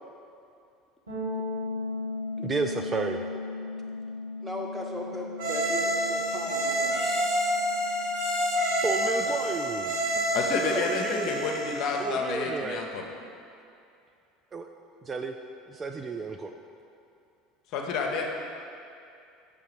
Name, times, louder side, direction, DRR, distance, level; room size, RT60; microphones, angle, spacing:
sound 1, 1.1-10.8, left 3 dB, 85° right, 1.2 m, -38 dB
voice 1, 2.4-3.2 8.8-10.0 10.6-11.5 12.0-12.8 14.5-14.7 15.0-15.4 15.7-16.5, right 4 dB, 25° right, 4 dB, 0.3 m, -32 dB
voice 2, 4.4-7.1 9.2-9.3, equal, 10° right, -1 dB, 1.0 m, -37 dB
sound 2, 5.4-12.1, equal, 65° right, 1.2 m, -28 dB
voice 3, 10.3-13.1 17.7-18.3, left 4 dB, 50° left, 1 dB, 0.7 m, -29 dB
5.8 x 3.6 x 5.9 m, 2.6 s
figure-of-eight pair, 70°, 0 cm